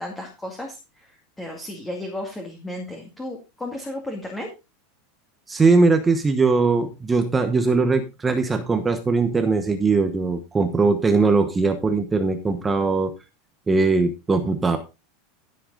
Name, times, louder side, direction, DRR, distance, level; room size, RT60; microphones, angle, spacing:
voice 1, 0.0-4.5, left 1 dB, 5° left, 2 dB, 2.2 m, -34 dB
voice 2, 5.5-13.1 13.7-14.8, right 4 dB, 10° right, 7 dB, 1.1 m, -20 dB
14.0 x 7.9 x 3.9 m, 0.27 s
supercardioid pair, 170°, 0 cm